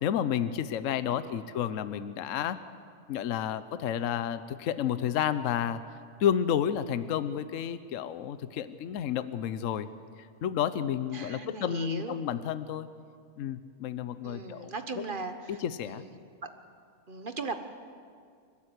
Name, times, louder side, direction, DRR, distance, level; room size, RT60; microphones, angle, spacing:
voice 1, 0.0-2.6 3.1-5.8 6.2-9.9 10.2-12.9 13.4-15.0 15.5-16.0, left 9 dB, 65° left, 13 dB, 1.1 m, -31 dB
voice 2, 0.9-1.3 11.1-12.2 14.2-16.5 17.1-17.6, right 3 dB, 35° right, 8 dB, 1.3 m, -39 dB
29.0 x 12.5 x 8.3 m, 2.2 s
omnidirectional pair, 1.6 m